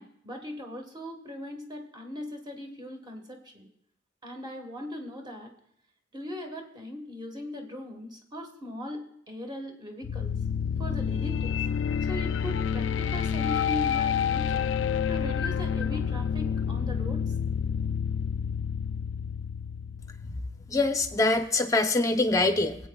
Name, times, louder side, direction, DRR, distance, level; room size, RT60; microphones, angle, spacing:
voice 1, 0.0-3.7 4.2-5.5 6.1-10.4 10.8-11.6 12.1-14.7 15.1-17.2, left 1 dB, 25° right, 3 dB, 1.5 m, -39 dB
sound 1, 10.0-20.9, left 7 dB, 75° left, 0.3 m, -29 dB
voice 2, 20.7-22.8, left 2 dB, 20° left, 6 dB, 0.7 m, -24 dB
25.5 x 8.5 x 2.3 m, 0.76 s
head